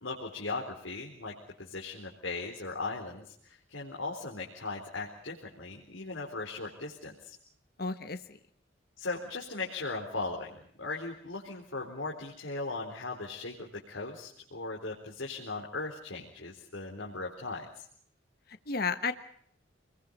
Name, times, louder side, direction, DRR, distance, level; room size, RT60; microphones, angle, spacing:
voice 1, 0.0-7.4 9.0-10.5 10.8-17.8, left 3 dB, 85° left, -2 dB, 4.1 m, -38 dB
voice 2, 7.8-8.4 18.7-19.1, left 4 dB, 50° left, 9 dB, 1.2 m, -32 dB
28.5 x 22.0 x 5.4 m, 0.63 s
head